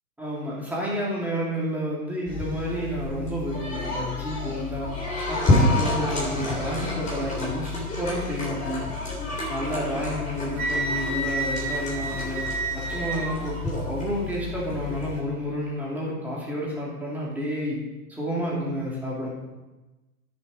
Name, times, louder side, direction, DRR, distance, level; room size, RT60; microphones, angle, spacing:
voice 1, 0.2-4.9 5.3-8.8 9.5-12.4 12.7-17.8 18.1-19.3, equal, 5° right, -6 dB, 3.0 m, -30 dB
sound 1, 2.3-15.2, left 2 dB, 15° left, 3.5 m, -29 dB
Wind instrument woodwind instrument, 10.6-13.4, right 3 dB, 70° right, 1.6 m, -30 dB
10.5 x 7.2 x 5.0 m, 1.1 s
hypercardioid pair, 130°, 46 cm